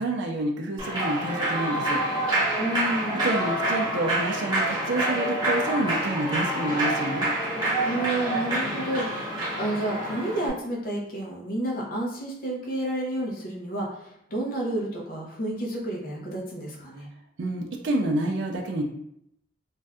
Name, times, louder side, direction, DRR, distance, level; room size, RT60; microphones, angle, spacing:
voice 1, 0.0-2.0 3.2-7.3 17.4-18.8, right 1 dB, 65° right, 1 dB, 0.4 m, -28 dB
Human voice / Clapping / Cheering, 0.8-10.5, right 1 dB, 20° right, 0.8 m, -27 dB
voice 2, 2.6-3.2 7.8-9.3 9.6-17.1, right 1 dB, 45° left, -2 dB, 0.7 m, -30 dB
2.6 x 2.2 x 3.4 m, 0.75 s
head